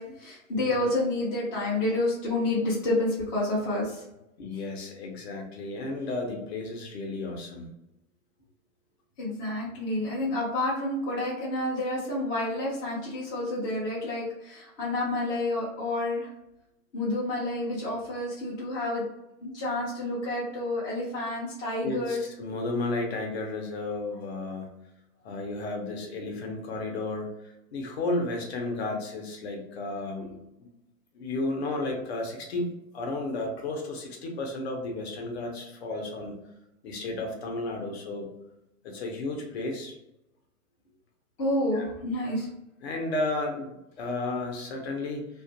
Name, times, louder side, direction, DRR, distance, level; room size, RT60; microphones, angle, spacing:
voice 1, 0.0-4.0 9.2-16.3 16.9-19.0 19.4-22.3 41.4-42.5, left 2 dB, 15° left, -8 dB, 0.5 m, -29 dB
voice 2, 4.4-7.7 21.8-24.7 25.2-30.4 31.1-36.4 36.8-38.3 38.8-39.9 41.7-41.9 42.8-45.3, left 2 dB, 45° left, 1 dB, 0.8 m, -33 dB
2.4 x 2.4 x 2.6 m, 0.89 s
hypercardioid pair, 140°, 45 cm